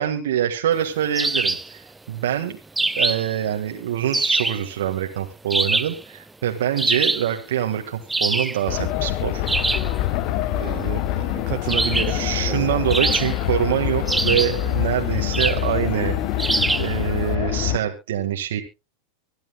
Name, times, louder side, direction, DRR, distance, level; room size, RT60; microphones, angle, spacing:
voice 1, 0.0-2.6 3.0-9.4 12.1-16.2 16.8-18.6, right 10 dB, 70° right, 3 dB, 1.7 m, -25 dB
sound 1, 1.1-1.7 2.8-3.4 4.1-4.6 5.5-6.0 6.8-7.3 8.1-8.6 9.5-9.9 11.7-12.2 12.9-13.6 14.1-14.6 15.3-15.7 16.4-16.9, right 2 dB, 10° right, 0.6 m, -23 dB
sound 2, 8.7-17.8, left 13 dB, 50° left, 1.3 m, -25 dB
voice 2, 10.5-12.7, right 21 dB, 55° right, 11 dB, 0.7 m, -31 dB
25.0 x 10.5 x 2.3 m, 0.27 s
hypercardioid pair, 95°, 0 cm